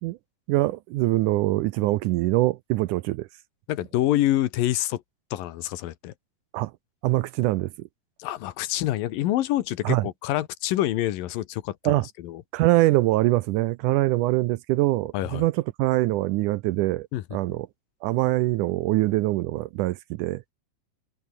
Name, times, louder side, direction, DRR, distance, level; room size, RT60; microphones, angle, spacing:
voice 1, 0.5-3.3 6.5-6.7 7.0-7.7 9.9-10.1 11.8-12.1 12.5-17.7 18.0-20.4, right 18 dB, 80° right, 1.9 m, -23 dB
voice 2, 3.7-5.0 5.3-6.1 8.2-12.4 15.1-15.5 17.1-17.4, left 14 dB, 85° left, 2.9 m, -27 dB
omnidirectional pair, 4.0 m